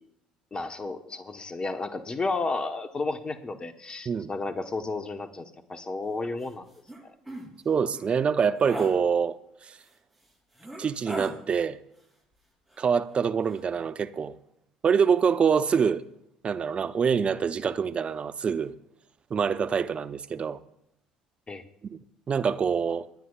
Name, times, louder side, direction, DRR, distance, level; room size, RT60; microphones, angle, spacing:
voice 1, 0.5-6.7 21.5-21.6, left 3 dB, 25° left, 1.2 m, -32 dB
sound 1, 6.4-6.5 6.9-7.0 7.2-7.5 7.9-8.1 8.6-8.9 9.8-9.9 10.5-11.3 12.7-13.1 13.4-13.6, right 1 dB, 5° right, 5.7 m, -38 dB
voice 2, 7.6-9.4 9.7-9.8 10.8-11.8 12.8-14.3 14.8-16.0 16.4-18.7 19.3-20.6 22.3-23.1, right 6 dB, 35° right, 0.7 m, -25 dB
27.5 x 9.4 x 2.5 m
figure-of-eight pair, 60°, 3 cm